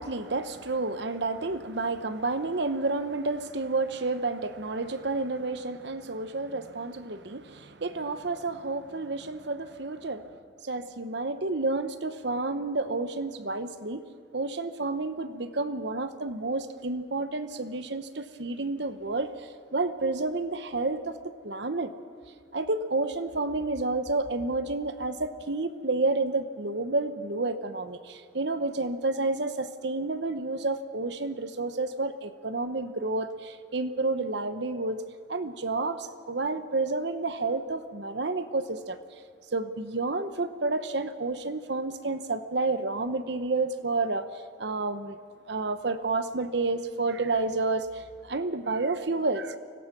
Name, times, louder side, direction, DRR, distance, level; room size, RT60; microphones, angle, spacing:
voice 1, 0.0-10.3 10.6-14.0 14.3-21.2 21.4-21.9 22.5-35.0 35.3-39.0 39.5-45.2 45.5-49.6, right 3 dB, 60° right, 11 dB, 1.0 m, -30 dB
24.5 x 17.0 x 6.1 m, 2.1 s
head